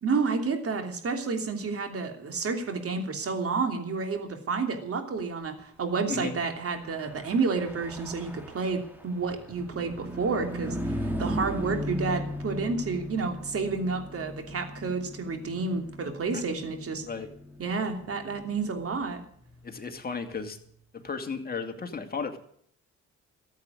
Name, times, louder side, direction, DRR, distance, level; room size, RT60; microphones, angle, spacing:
voice 1, 0.0-17.0 17.6-19.2, right 4 dB, 50° right, 5 dB, 3.1 m, -30 dB
Car passing by / Truck, 6.7-20.4, equal, 5° right, 2.6 m, -38 dB
voice 2, 19.6-20.6 20.9-22.4, left 5 dB, 30° left, 5 dB, 2.4 m, -34 dB
14.5 x 8.2 x 9.8 m, 0.64 s
cardioid pair, 90°, 30 cm